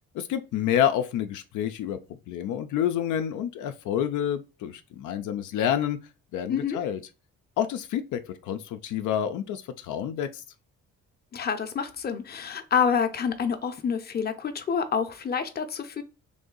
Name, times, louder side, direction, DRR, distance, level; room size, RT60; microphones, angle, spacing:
voice 1, 0.1-2.0 2.3-6.0 6.3-7.0 7.6-10.4, left 10 dB, 80° left, 0.5 m, -28 dB
voice 2, 11.3-16.0, left 6 dB, 30° left, 0.6 m, -27 dB
3.3 x 2.6 x 3.8 m
cardioid pair, 90°, 30 cm